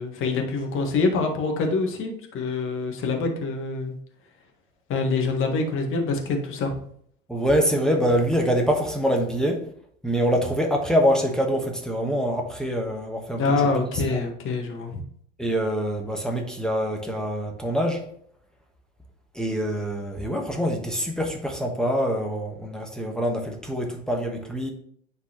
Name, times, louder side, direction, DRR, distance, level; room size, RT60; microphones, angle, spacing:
voice 1, 0.0-3.9 4.9-6.8 13.4-15.0, left 3 dB, 35° left, 3 dB, 1.5 m, -25 dB
voice 2, 7.3-9.6 10.0-13.4 14.1-14.2 15.4-18.0 19.3-24.7, equal, ahead, 1 dB, 1.0 m, -25 dB
9.4 x 4.1 x 3.0 m, 0.64 s
hypercardioid pair, 95°, 38 cm